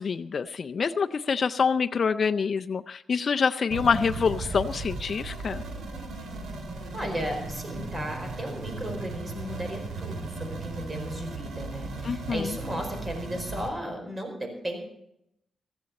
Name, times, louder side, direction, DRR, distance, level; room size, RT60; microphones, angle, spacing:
voice 1, 0.0-5.6 12.0-12.5, left 5 dB, 55° left, 8 dB, 0.4 m, -26 dB
sound 1, 3.7-13.7, right 3 dB, 80° right, 2.7 m, -36 dB
voice 2, 6.9-14.8, equal, 30° right, 4 dB, 4.6 m, -35 dB
15.5 x 14.5 x 4.1 m, 0.78 s
cardioid pair, 80°, 0 cm